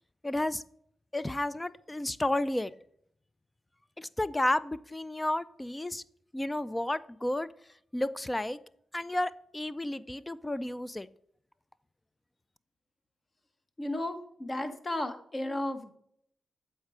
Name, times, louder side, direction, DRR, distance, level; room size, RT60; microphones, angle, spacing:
voice 1, 0.2-0.6 1.1-2.7 4.0-6.0 6.3-7.5 7.9-8.6 8.9-11.1, left 1 dB, 15° left, 16 dB, 0.4 m, -32 dB
voice 2, 13.8-15.9, left 1 dB, 35° left, 8 dB, 1.2 m, -34 dB
7.9 x 4.4 x 4.9 m, 0.68 s
supercardioid pair, 55°, 0 cm